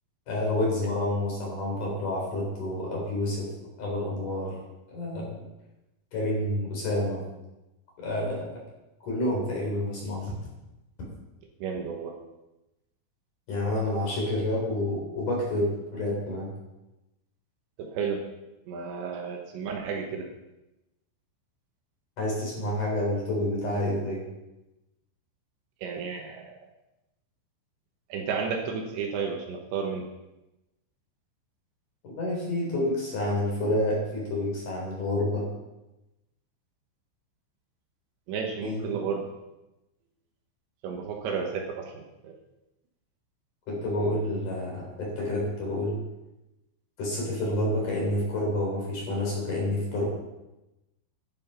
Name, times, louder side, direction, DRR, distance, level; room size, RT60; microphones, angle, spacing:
voice 1, 0.3-3.5 3.8-4.6 4.9-5.4 6.1-7.2 8.0-8.6 9.0-10.3 13.5-16.5 22.2-24.2 32.0-35.5 38.6-39.0 43.7-46.0 47.0-50.1, left 1 dB, 45° left, -2 dB, 4.8 m, -29 dB
voice 2, 11.6-12.2 17.8-18.2 18.7-20.3 25.8-26.5 28.1-30.1 38.3-39.3 40.8-42.3, right 5 dB, 75° right, 2 dB, 3.2 m, -32 dB
12.0 x 9.4 x 5.7 m, 0.97 s
omnidirectional pair, 5.7 m